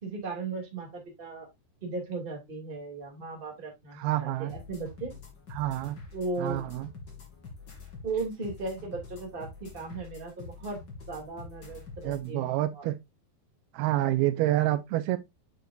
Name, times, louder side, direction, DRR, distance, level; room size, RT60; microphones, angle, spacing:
voice 1, 0.0-1.5 1.8-5.1 6.1-6.6 8.0-10.8 11.1-12.9, right 3 dB, 20° right, 1.9 m, -36 dB
voice 2, 4.0-4.5 5.5-6.0 6.4-6.9 12.0-12.9 13.7-15.2, right 15 dB, 85° right, 2.6 m, -28 dB
sound 1, 4.5-12.3, left 5 dB, 30° left, 2.8 m, -46 dB
8.1 x 6.7 x 2.5 m
omnidirectional pair, 4.4 m